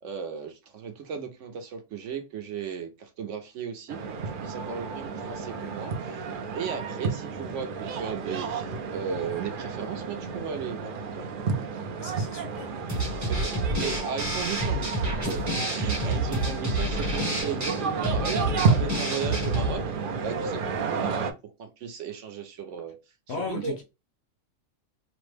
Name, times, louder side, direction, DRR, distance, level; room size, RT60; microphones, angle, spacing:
voice 1, 0.0-4.0 4.4-6.3 6.5-11.4 13.1-19.9 20.2-23.0 23.3-23.8, right 6 dB, 65° right, 0.9 m, -36 dB
sound 1, 3.9-21.3, right 5 dB, 85° right, 0.4 m, -31 dB
voice 2, 12.0-12.7 13.1-13.5 23.3-23.8, left 5 dB, 65° left, 0.7 m, -37 dB
sound 2, 12.9-19.8, right 1 dB, 15° right, 0.7 m, -29 dB
3.3 x 2.1 x 3.2 m
omnidirectional pair, 1.5 m